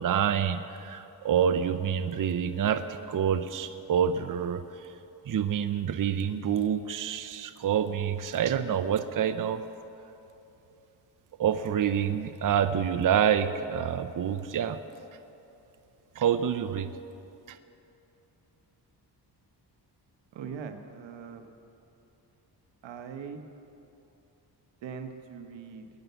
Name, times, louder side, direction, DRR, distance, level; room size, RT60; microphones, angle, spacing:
voice 1, 0.0-4.6 5.3-9.6 11.4-14.8 16.2-16.9 17.5-17.6, right 8 dB, 50° right, 10 dB, 0.7 m, -27 dB
voice 2, 20.3-21.5 22.8-23.4 24.8-25.9, right 6 dB, 90° right, 7 dB, 1.3 m, -41 dB
21.0 x 9.2 x 6.9 m, 2.9 s
cardioid pair, 90°, 43 cm